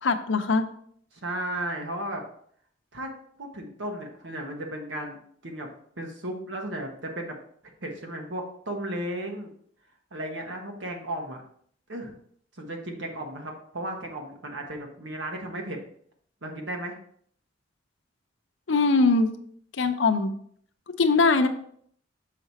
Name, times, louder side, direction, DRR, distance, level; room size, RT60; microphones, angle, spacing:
voice 1, 0.0-0.6 18.7-19.3 19.8-20.3 21.0-21.5, left 3 dB, 80° left, 8 dB, 0.7 m, -21 dB
voice 2, 1.1-2.2 2.9-3.1 3.4-5.2 5.4-5.7 6.0-7.4 7.8-9.5 10.1-11.4 11.9-12.1 12.6-15.8 16.4-16.9, right 1 dB, 85° right, 2 dB, 1.4 m, -34 dB
6.6 x 5.0 x 4.1 m, 0.62 s
head